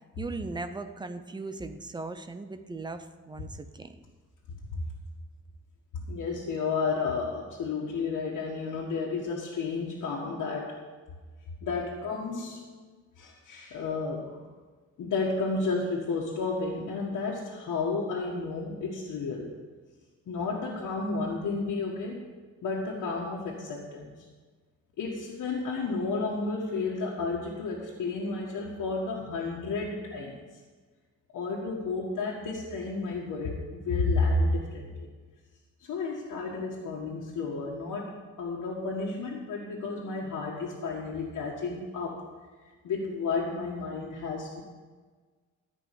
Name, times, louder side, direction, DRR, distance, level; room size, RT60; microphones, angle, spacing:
voice 1, 0.2-3.9, right 3 dB, 15° right, 8 dB, 0.5 m, -38 dB
voice 2, 5.9-10.7 11.6-12.6 13.2-14.5 15.0-19.5 20.3-22.3 22.6-24.1 25.0-30.4 31.3-35.1 35.9-42.2 42.8-44.6, left 3 dB, 75° left, -4 dB, 1.8 m, -32 dB
14.0 x 5.4 x 8.4 m, 1.4 s
wide cardioid pair, 180°, 31 cm